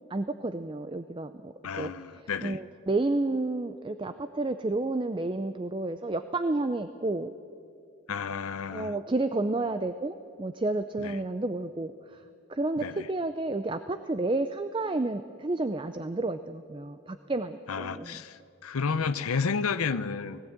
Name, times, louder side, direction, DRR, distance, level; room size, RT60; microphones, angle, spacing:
voice 1, 0.1-7.3 8.7-18.2, right 2 dB, 20° right, 10 dB, 0.4 m, -31 dB
voice 2, 1.6-2.6 8.1-8.9 11.0-11.1 12.8-13.1 17.7-20.4, left 5 dB, 90° left, 12 dB, 0.6 m, -31 dB
18.5 x 16.0 x 8.8 m, 2.4 s
head